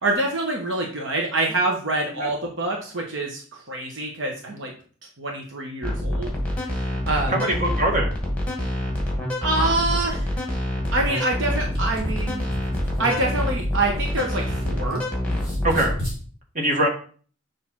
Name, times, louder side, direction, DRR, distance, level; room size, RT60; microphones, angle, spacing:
voice 1, 0.0-4.7 5.2-6.4 7.1-7.3 9.4-10.3 10.9-12.5 13.0-15.0, right 2 dB, 65° right, 0 dB, 1.1 m, -26 dB
sound 1, 5.8-15.9, left 1 dB, 5° left, 1.8 m, -26 dB
voice 2, 7.3-8.1 15.6-16.0 16.5-16.9, right 1 dB, 40° right, 0 dB, 1.6 m, -22 dB
sound 2, 11.6-15.0 15.3-16.2, equal, 25° right, 2.6 m, -34 dB
6.5 x 3.4 x 5.8 m, 0.43 s
head